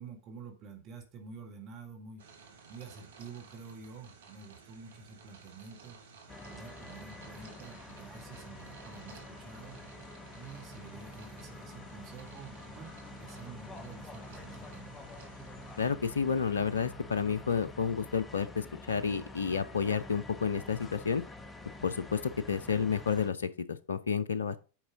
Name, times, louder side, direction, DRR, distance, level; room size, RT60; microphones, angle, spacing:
voice 1, 0.0-2.3 2.7-6.0 6.4-9.8 10.4-14.9, right 5 dB, 35° right, 1.8 m, -49 dB
sound 1, 2.2-15.9, right 5 dB, 60° right, 1.4 m, -55 dB
sound 2, 6.3-23.3, left 2 dB, 15° left, 1.0 m, -48 dB
voice 2, 15.8-21.2 21.8-22.2 22.5-24.6, left 6 dB, 70° left, 0.5 m, -31 dB
8.7 x 5.2 x 3.7 m
figure-of-eight pair, 90°, 0 cm